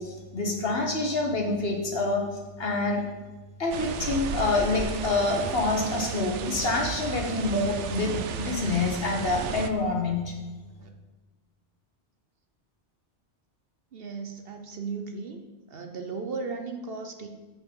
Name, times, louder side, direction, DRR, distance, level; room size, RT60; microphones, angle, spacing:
voice 1, 0.0-2.2 2.6-3.0 3.6-10.3, left 3 dB, 55° left, 2 dB, 1.6 m, -27 dB
sound 1, 3.7-9.7, right 6 dB, 80° right, 1.0 m, -34 dB
voice 2, 13.9-15.4 15.7-17.3, right 4 dB, 55° right, 5 dB, 1.0 m, -36 dB
6.8 x 6.0 x 7.3 m, 1.2 s
omnidirectional pair, 1.2 m